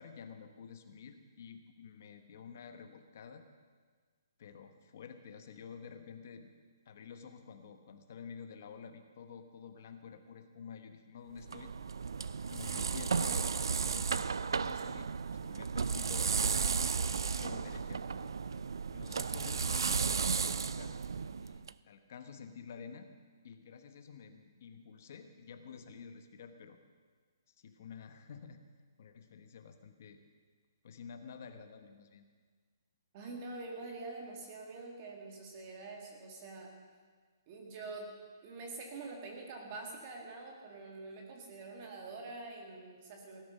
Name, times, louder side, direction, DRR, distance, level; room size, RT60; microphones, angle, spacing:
voice 1, 0.0-3.4 4.4-6.5 6.8-11.7 12.5-15.1 15.4-18.0 18.9-20.9 21.4-23.1 23.4-26.8 27.5-28.6 29.0-30.2 30.8-32.2, left 6 dB, 35° left, 7 dB, 1.1 m, -50 dB
sound 1, 11.4-21.7, right 5 dB, 80° right, 0.4 m, -34 dB
voice 2, 33.1-36.7 37.5-38.1 38.4-43.4, right 3 dB, 20° right, 1 dB, 1.8 m, -45 dB
17.0 x 12.0 x 5.6 m, 1.5 s
hypercardioid pair, 180°, 2 cm